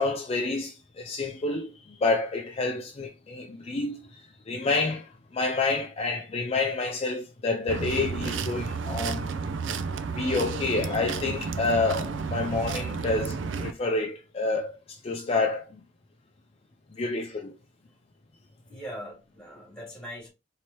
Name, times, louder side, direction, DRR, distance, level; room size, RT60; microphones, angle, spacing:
voice 1, 0.0-4.2 4.5-9.3 10.2-15.7 17.0-17.5, left 3 dB, 30° left, 0.4 m, -28 dB
sound 1, 7.7-13.7, right 5 dB, 80° right, 0.4 m, -32 dB
voice 2, 18.6-20.3, equal, 5° left, 2.0 m, -41 dB
4.5 x 2.8 x 3.0 m
head